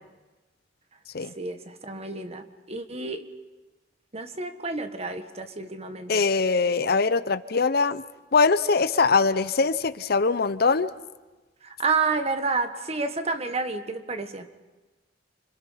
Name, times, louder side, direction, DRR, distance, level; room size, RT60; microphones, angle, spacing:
voice 1, 1.3-3.3 4.1-6.2 11.6-14.5, right 4 dB, 35° right, 8 dB, 1.5 m, -30 dB
voice 2, 6.1-8.0 8.3-10.9, left 4 dB, 55° left, 14 dB, 0.7 m, -22 dB
29.0 x 26.0 x 5.7 m, 1.2 s
head